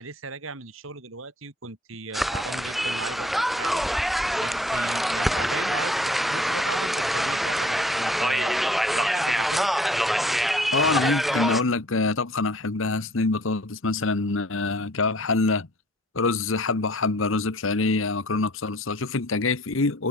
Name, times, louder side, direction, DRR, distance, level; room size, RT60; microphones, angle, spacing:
voice 1, 0.0-3.8 4.4-9.7, right 4 dB, 85° right, 2.7 m, -37 dB
sound 1, 2.1-11.6, equal, ahead, 1.0 m, -25 dB
voice 2, 10.7-15.7 16.1-20.1, left 3 dB, 80° left, 1.2 m, -25 dB
head